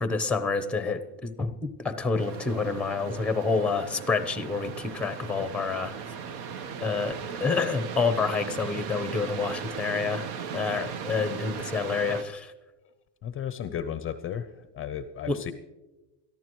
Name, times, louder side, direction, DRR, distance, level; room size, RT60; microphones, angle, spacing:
voice 1, 0.0-5.9 6.8-7.1 7.4-10.3 10.5-12.5 15.3-15.4, left 4 dB, 5° left, 11 dB, 0.8 m, -28 dB
sound 1, 2.2-12.2, right 7 dB, 60° right, 1.1 m, -37 dB
voice 2, 13.2-15.5, left 9 dB, 30° left, 11 dB, 0.6 m, -34 dB
22.5 x 14.0 x 3.1 m, 1.1 s
cardioid pair, 135°, 41 cm